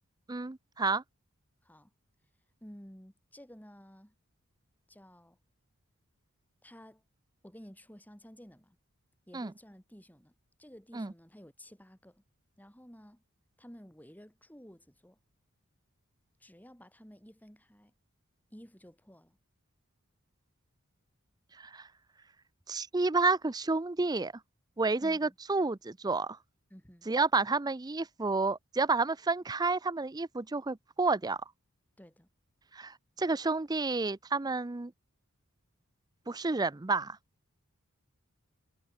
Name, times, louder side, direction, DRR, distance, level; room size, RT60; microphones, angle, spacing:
voice 1, 0.3-1.0 9.3-9.5 10.9-11.1 21.6-21.9 22.7-24.3 24.8-26.4 27.1-31.4 32.7-34.9 36.3-37.2, right 3 dB, 20° right, 0.5 m, -30 dB
voice 2, 2.6-4.1 4.9-5.4 6.6-7.0 7.4-8.8 9.3-10.3 10.6-12.2 12.6-13.2 13.6-15.2 16.4-17.9 18.5-19.4 25.0-25.4 26.7-27.1 32.0-32.3, equal, 10° left, 7.8 m, -53 dB
head